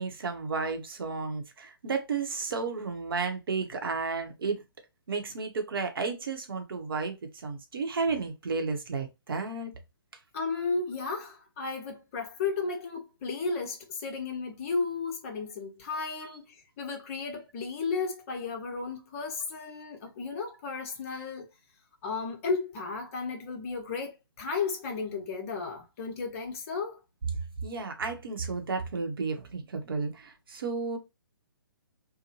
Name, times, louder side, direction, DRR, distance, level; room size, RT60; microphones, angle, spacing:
voice 1, 0.0-4.6 5.1-9.7 16.2-16.4 27.6-31.0, right 4 dB, 65° right, 0.8 m, -32 dB
voice 2, 10.3-21.5 22.0-27.0, left 4 dB, 35° left, 0.9 m, -34 dB
2.9 x 2.1 x 2.8 m
figure-of-eight pair, 140°, 13 cm